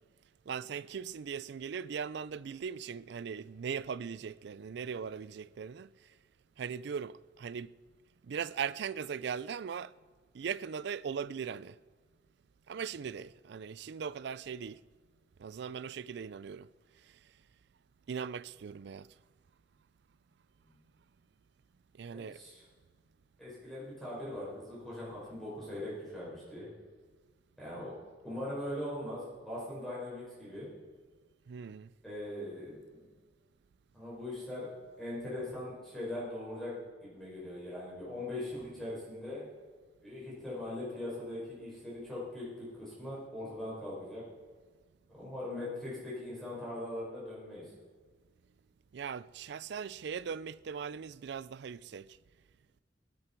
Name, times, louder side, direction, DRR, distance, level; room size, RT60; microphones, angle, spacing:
voice 1, 0.5-5.9 6.6-7.7 8.2-9.9 10.3-11.8 12.7-14.8 15.4-16.7 18.1-19.1 21.9-22.4 31.5-31.9 48.9-52.1, right 7 dB, 65° right, 0.4 m, -39 dB
voice 2, 22.1-22.6 23.4-26.7 27.6-27.9 28.2-30.7 32.0-33.0 33.9-34.7 35.0-36.7 37.0-39.5 40.0-44.2 45.1-47.6, left 1 dB, ahead, 5.4 m, -40 dB
21.0 x 11.0 x 4.5 m
head